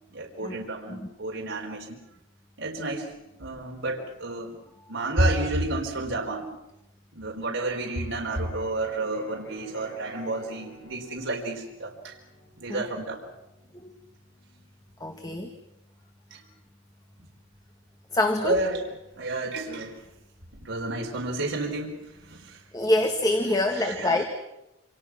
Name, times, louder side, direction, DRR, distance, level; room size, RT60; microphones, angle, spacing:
voice 1, 0.1-2.0 2.6-3.1 3.4-4.6 4.9-6.5 7.1-12.2 12.6-13.2 16.3-16.4 18.4-20.0 20.6-22.6 23.7-24.3, right 2 dB, 70° right, -1 dB, 4.5 m, -30 dB
Electric guitar, 7.6-15.4, equal, 60° left, 5.8 m, -51 dB
voice 2, 15.0-15.5 18.1-18.6 22.7-24.2, left 1 dB, 20° left, 5 dB, 1.6 m, -25 dB
28.0 x 26.5 x 6.2 m, 0.93 s
head